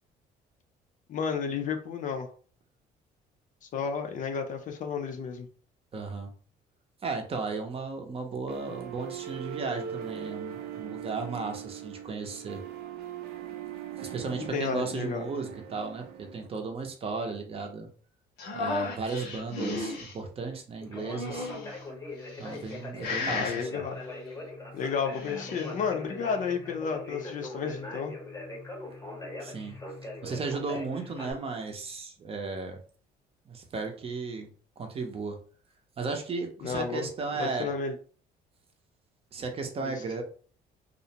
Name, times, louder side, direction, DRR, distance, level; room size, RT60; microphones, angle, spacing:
voice 1, 1.1-2.3 3.7-5.5 14.5-15.2 23.3-24.0 24.7-28.1 36.6-37.1 37.4-37.9, left 6 dB, 50° left, 6 dB, 0.5 m, -32 dB
voice 2, 5.9-6.3 7.0-12.6 14.0-17.9 18.5-21.5 22.4-23.8 29.4-29.8 30.2-32.8 33.5-34.5 34.8-35.4 36.0-37.7 39.3-40.2, right 4 dB, 35° right, 4 dB, 0.6 m, -35 dB
sound 1, 8.5-16.5, right 10 dB, 80° right, 0.4 m, -40 dB
sound 2, 18.4-20.1 20.9-21.8 22.4-22.8 23.0-23.6 25.0-25.7, left 3 dB, 85° left, 0.9 m, -34 dB
Conversation, 20.8-31.3, left 2 dB, 15° left, 0.7 m, -41 dB
2.4 x 2.0 x 2.8 m, 0.42 s
cardioid pair, 110°, 17 cm